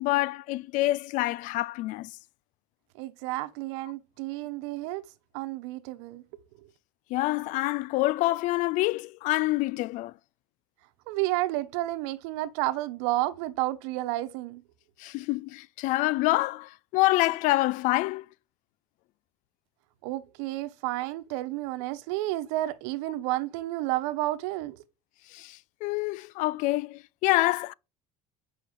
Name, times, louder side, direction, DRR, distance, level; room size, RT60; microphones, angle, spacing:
voice 1, 0.0-2.1 7.1-10.1 15.0-18.2 25.3-27.7, left 18 dB, 65° left, 0.5 m, -27 dB
voice 2, 3.0-5.0 5.3-6.2 11.1-14.6 20.0-24.8, right 17 dB, 90° right, 1.1 m, -31 dB
8.2 x 5.6 x 7.4 m
cardioid pair, 135°, 14 cm